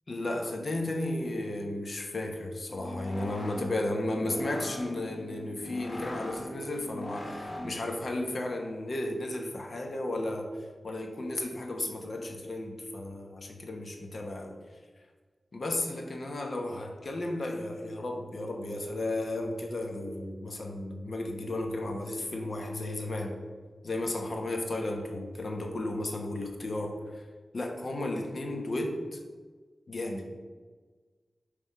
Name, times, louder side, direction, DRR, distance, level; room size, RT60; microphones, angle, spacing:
voice 1, 0.1-14.6 15.5-23.3 23.8-27.2 27.5-29.2 29.9-30.4, left 1 dB, 65° left, 3 dB, 1.0 m, -34 dB
sound 1, 2.7-8.0, left 1 dB, 40° left, 1.0 m, -41 dB
5.6 x 3.4 x 5.5 m, 1.4 s
cardioid pair, 50°, 0 cm